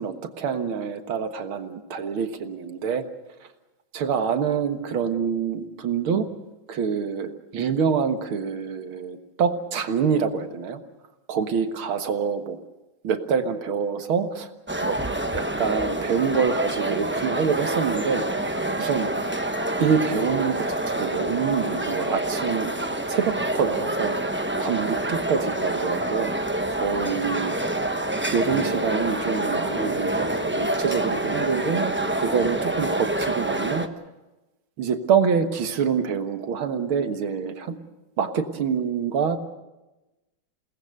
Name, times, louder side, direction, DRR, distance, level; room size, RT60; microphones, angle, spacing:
voice 1, 0.0-3.0 3.9-6.3 6.7-10.8 11.3-12.6 13.0-14.5 14.8-15.0 15.3-19.1 19.8-22.7 23.1-24.1 24.6-26.4 26.7-27.5 28.3-33.9 34.8-37.8 38.2-39.4, right 6 dB, 80° right, 7 dB, 2.3 m, -26 dB
sound 1, 14.7-33.9, right 1 dB, 15° right, 0.3 m, -27 dB
28.5 x 19.0 x 6.6 m, 1.0 s
omnidirectional pair, 2.2 m